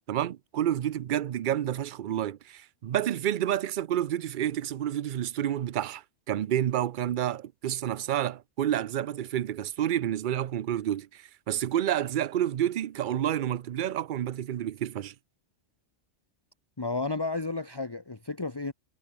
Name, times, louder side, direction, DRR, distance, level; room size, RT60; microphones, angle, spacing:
voice 1, 0.1-15.1, right 11 dB, 55° right, 0.6 m, -29 dB
voice 2, 16.8-18.7, left 3 dB, 20° left, 1.3 m, -32 dB
omnidirectional pair, 1.2 m